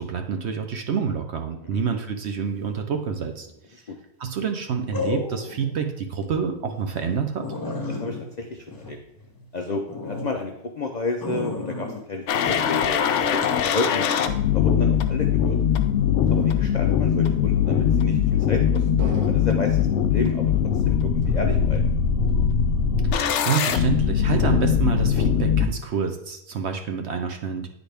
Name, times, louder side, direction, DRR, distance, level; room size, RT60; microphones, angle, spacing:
voice 1, 0.0-3.5 4.2-7.5 23.4-27.7, right 6 dB, 60° right, 5 dB, 0.8 m, -27 dB
sound 1, 3.3-3.7 4.9-5.7 6.1-6.2 6.7-6.8 7.1-7.2 7.4-9.4 9.9-10.3 11.2-12.0 12.4-12.8 13.4-13.6, left 3 dB, 25° left, 0.5 m, -32 dB
voice 2, 7.9-9.0 9.5-14.2 14.5-15.6 16.3-18.2 18.5-20.4 20.9-21.9, left 3 dB, 90° left, 2 dB, 0.3 m, -31 dB
sound 2, 12.3-25.7, left 8 dB, 65° left, 0.7 m, -21 dB
sound 3, 16.3-17.1 18.0-18.5 19.0-19.8 20.3-20.9 21.2-22.0 22.3-22.7 23.2-23.8, right 2 dB, 80° right, 1.6 m, -40 dB
9.7 x 4.0 x 3.4 m, 0.77 s
omnidirectional pair, 1.6 m